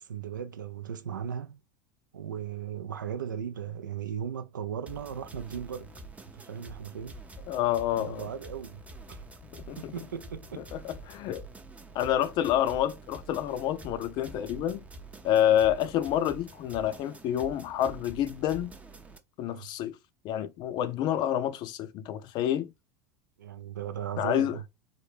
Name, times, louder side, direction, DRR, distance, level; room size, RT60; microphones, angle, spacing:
voice 1, 0.0-1.6 2.1-5.9 6.3-7.2 8.0-8.8 9.1-9.2 9.8-10.7 19.5-19.7 23.4-24.6, right 8 dB, 85° right, 0.4 m, -37 dB
sound 1, 4.9-19.2, right 2 dB, 15° right, 0.5 m, -47 dB
voice 2, 7.5-8.3 9.5-9.9 10.7-11.4 11.9-14.9 15.2-18.7 19.4-20.0 20.2-22.7 24.2-24.6, left 11 dB, 45° left, 0.4 m, -28 dB
3.6 x 2.1 x 3.3 m
hypercardioid pair, 80°, 10 cm